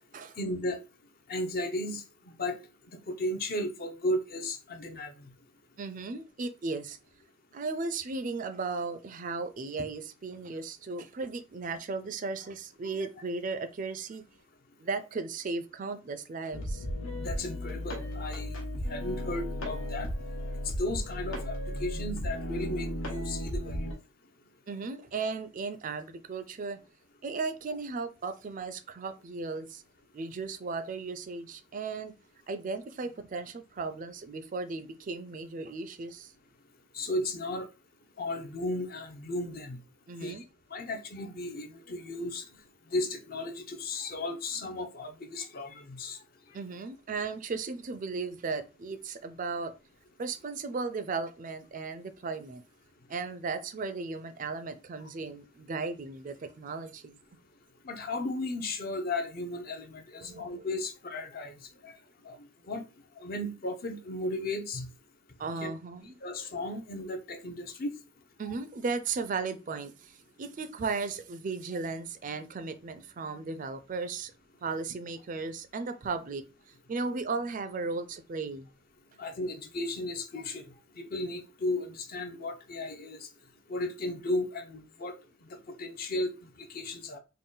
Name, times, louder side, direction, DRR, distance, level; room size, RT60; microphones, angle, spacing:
voice 1, 0.4-0.8 1.3-2.0 2.4-2.6 2.9-5.3 12.9-13.1 17.2-18.6 18.9-20.1 20.8-24.0 36.9-37.7 38.2-39.8 40.2-40.4 40.7-42.5 42.9-46.2 57.8-61.5 61.8-61.9 62.2-62.4 62.7-62.9 63.2-64.9 65.6-65.7 66.2-67.9 79.2-80.7 81.0-83.2 83.7-85.1 85.5-87.2, left 1 dB, 45° left, 0.6 m, -35 dB
voice 2, 5.8-7.0 7.5-14.2 14.8-16.9 24.7-26.8 27.2-29.8 30.1-32.1 32.5-36.3 40.1-40.4 46.5-49.7 50.2-52.6 53.1-57.2 60.2-60.7 65.4-66.2 68.4-74.3 74.6-76.4 76.9-78.7, right 4 dB, 40° right, 0.4 m, -36 dB
sound 1, 16.5-23.9, equal, 80° left, 1.1 m, -35 dB
3.8 x 2.2 x 3.8 m
head